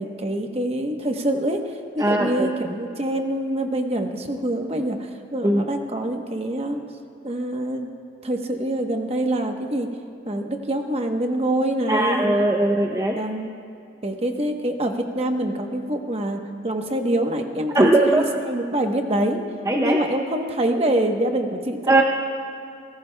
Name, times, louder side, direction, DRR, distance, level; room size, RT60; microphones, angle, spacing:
voice 1, 0.0-6.8 7.2-7.9 8.2-9.9 10.3-12.3 12.9-13.5 14.0-19.4 19.8-22.0, right 1 dB, 35° right, 4 dB, 1.0 m, -25 dB
voice 2, 2.0-2.5 5.4-5.6 11.9-13.2 17.7-18.2 19.7-20.0 21.9-22.0, right 1 dB, 15° right, 0 dB, 0.6 m, -19 dB
26.0 x 17.5 x 2.2 m, 2.5 s
head